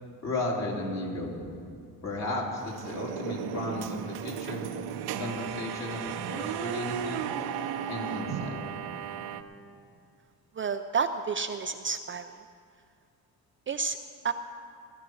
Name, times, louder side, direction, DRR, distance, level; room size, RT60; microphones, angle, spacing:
voice 1, 0.2-1.4 2.0-4.7 5.2-7.2 7.9-8.6, left 2 dB, 45° left, -2 dB, 3.5 m, -34 dB
sound 1, 2.6-9.4, right 9 dB, 80° right, 0.9 m, -35 dB
voice 2, 10.6-12.3 13.7-14.0 14.2-14.3, right 5 dB, 35° right, 8 dB, 0.4 m, -30 dB
17.0 x 10.0 x 6.3 m, 2.5 s
cardioid pair, 125°, 38 cm